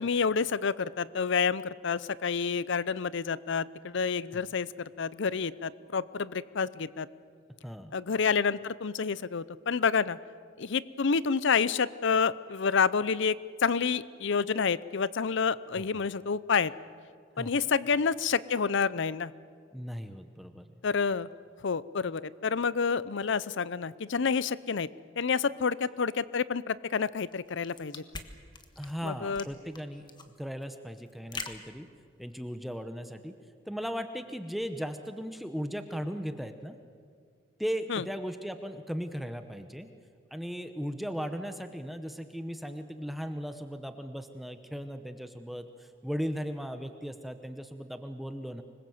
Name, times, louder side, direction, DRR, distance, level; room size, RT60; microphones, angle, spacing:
voice 1, 0.0-4.7 5.0-7.1 7.9-10.2 10.6-13.4 13.6-16.7 17.4-19.3 20.8-21.3 21.6-24.9 25.2-28.0 29.0-29.4 37.9-38.0, left 5 dB, 65° left, 18 dB, 0.6 m, -28 dB
voice 2, 7.6-7.9 15.7-16.0 17.4-17.5 19.7-20.7 28.8-30.1 30.4-31.9 32.2-33.3 33.7-36.8 37.6-39.9 40.3-48.6, equal, ahead, 8 dB, 0.8 m, -37 dB
sound 1, 27.3-32.5, left 4 dB, 25° left, 1.4 m, -44 dB
25.5 x 21.0 x 7.9 m, 2.1 s
head